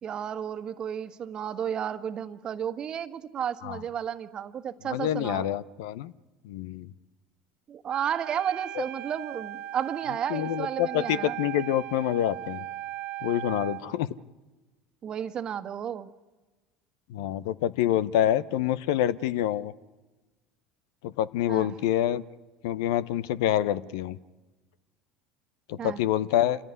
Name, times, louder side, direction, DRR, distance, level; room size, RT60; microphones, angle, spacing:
voice 1, 0.0-5.5 7.7-11.4 15.0-16.1 21.5-21.7 25.8-26.0, right 8 dB, 40° right, 10 dB, 1.5 m, -32 dB
voice 2, 4.8-6.1 6.4-6.9 8.8-8.9 10.3-12.6 13.2-14.1 17.1-19.7 21.0-22.2 22.6-24.2 25.7-26.6, left 12 dB, 70° left, 17 dB, 0.8 m, -27 dB
Wind instrument woodwind instrument, 7.9-13.9, right 14 dB, 60° right, 1.0 m, -38 dB
27.5 x 16.5 x 9.7 m, 1.2 s
hypercardioid pair, 70°, 2 cm